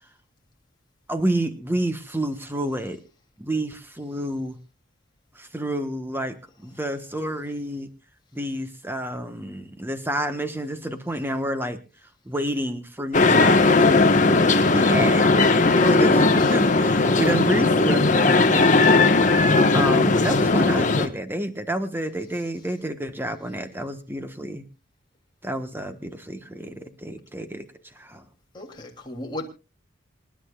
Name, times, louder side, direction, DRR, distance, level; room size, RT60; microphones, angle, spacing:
voice 1, 1.1-3.0 3.4-4.6 5.3-7.9 8.3-11.8 12.2-14.2 14.7-15.3 15.9-18.9 19.7-24.7 25.4-28.2, right 1 dB, 10° right, 1.3 m, -29 dB
sound 1, 13.1-21.1, left 3 dB, 40° left, 1.4 m, -18 dB
voice 2, 15.8-16.5 28.5-29.5, left 1 dB, 25° left, 3.1 m, -35 dB
27.0 x 11.0 x 2.4 m
head